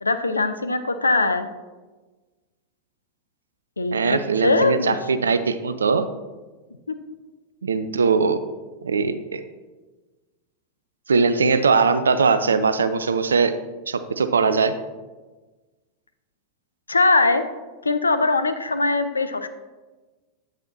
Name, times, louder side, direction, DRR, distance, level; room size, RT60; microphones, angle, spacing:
voice 1, 0.0-1.5 3.8-5.0 5.2-5.3 6.9-7.0 16.9-17.4 17.8-19.5, left 3 dB, 80° left, 10 dB, 0.5 m, -21 dB
voice 2, 3.9-6.1 7.6-8.4 8.8-9.4 11.1-13.6 13.9-14.7, right 5 dB, 70° right, 11 dB, 0.4 m, -20 dB
8.2 x 7.1 x 2.7 m, 1.2 s
figure-of-eight pair, 90°, 0 cm